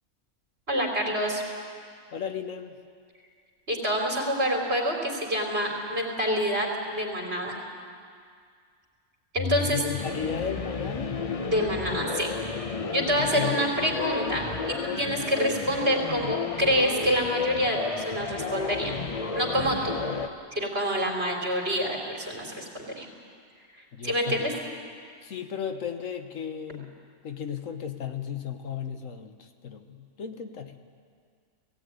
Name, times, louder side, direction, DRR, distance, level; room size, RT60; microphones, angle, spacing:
voice 1, 0.7-1.4 3.7-7.6 9.3-9.8 11.4-12.3 12.9-18.9 19.3-19.9 20.5-23.1 24.0-24.5, equal, 50° right, 0 dB, 3.4 m, -27 dB
voice 2, 2.1-2.8 9.6-11.2 13.2-13.6 23.9-24.6 25.2-26.9 27.2-30.8, left 8 dB, 80° left, 7 dB, 1.5 m, -35 dB
sound 1, 9.4-20.3, left 4 dB, 35° left, 0.7 m, -32 dB
17.0 x 16.5 x 9.5 m, 2.1 s
omnidirectional pair, 1.3 m